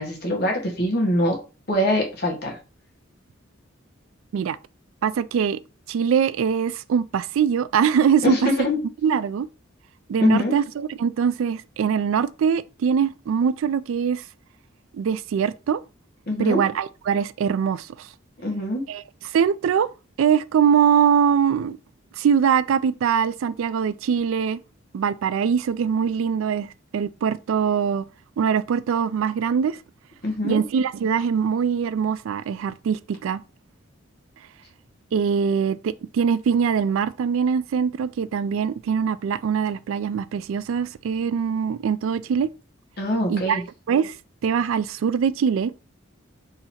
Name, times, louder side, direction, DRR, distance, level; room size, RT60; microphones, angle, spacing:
voice 1, 0.0-1.4 1.7-2.6 8.2-8.8 10.2-10.6 16.3-16.6 18.4-18.8 30.2-30.6 43.0-43.6, left 1 dB, 50° left, 1.3 m, -23 dB
voice 2, 5.0-5.6 5.9-8.5 9.0-9.5 10.1-14.2 14.9-15.8 16.4-18.1 18.9-19.0 19.3-19.9 20.2-21.8 22.2-24.6 24.9-26.7 26.9-28.1 28.4-29.8 30.4-33.4 35.1-42.5 43.3-43.6 43.9-44.1 44.4-45.7, right 7 dB, 80° right, 0.3 m, -22 dB
3.9 x 2.8 x 4.2 m
head